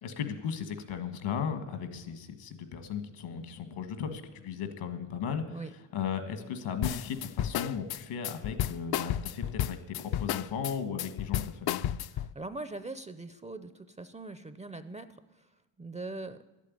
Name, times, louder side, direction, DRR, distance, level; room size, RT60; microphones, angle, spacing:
voice 1, 0.0-5.6 5.9-11.8, left 7 dB, 75° left, 9 dB, 1.8 m, -36 dB
sound 1, 6.8-12.3, left 11 dB, 50° left, 0.5 m, -32 dB
voice 2, 12.1-15.1 15.3-15.5 15.8-16.4, right 2 dB, 15° right, 11 dB, 0.5 m, -41 dB
11.5 x 8.4 x 9.5 m, 1.1 s
cardioid pair, 110°, 50 cm